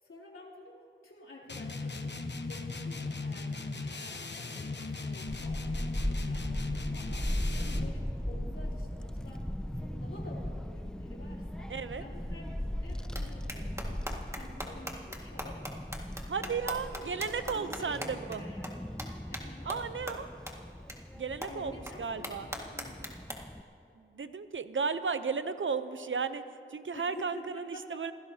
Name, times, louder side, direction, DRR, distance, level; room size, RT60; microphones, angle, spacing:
voice 1, 0.0-7.3 7.6-15.7 16.4-18.9 19.3-19.7 21.4-23.2 26.9-28.0, left 1 dB, 80° left, -5 dB, 3.3 m, -50 dB
sound 1, 1.5-8.0, left 3 dB, 55° left, 1.0 m, -37 dB
Child speech kid speaking / Wind, 5.3-23.6, left 1 dB, 5° left, 0.5 m, -38 dB
voice 2, 11.7-12.0 16.3-18.4 19.7-20.3 21.2-21.7 22.0-22.5 24.0-26.4 26.7-28.1, right 5 dB, 65° right, 11 dB, 0.7 m, -34 dB
sound 2, 13.1-13.2 13.5-18.4 18.6-18.7 19.0-19.1 19.3-19.4 19.7-19.8 20.1-20.2 20.5-20.6 20.9-21.0 21.4-21.5 21.9-22.0 22.2-23.3, equal, 15° right, 1.9 m, -39 dB
27.0 x 16.5 x 2.8 m, 2.5 s
wide cardioid pair, 50°, 21 cm